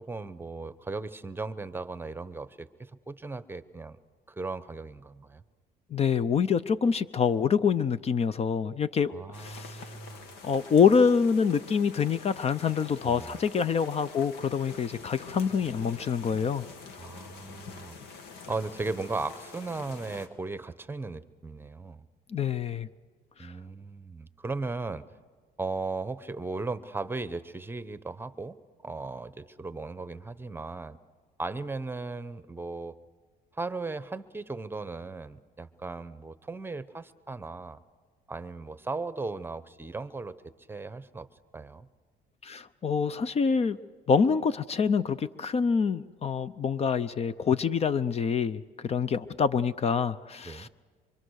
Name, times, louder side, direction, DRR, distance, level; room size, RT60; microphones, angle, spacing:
voice 1, 0.0-4.0 4.3-5.4 9.1-10.3 13.0-13.4 17.0-17.9 18.5-22.0 23.4-25.0 25.6-28.6 28.8-31.0 31.4-33.0 33.5-37.8 38.3-40.4 40.7-41.3 41.5-41.9 50.4-50.7, right 3 dB, 15° right, 13 dB, 0.9 m, -37 dB
voice 2, 5.9-9.8 10.4-16.7 22.3-22.9 23.4-23.5 42.4-43.8 44.1-50.7, left 6 dB, 40° left, 15 dB, 0.6 m, -26 dB
sound 1, 9.3-20.3, left 4 dB, 90° left, 2.3 m, -46 dB
25.0 x 25.0 x 6.5 m, 1.5 s
cardioid pair, 110°, 17 cm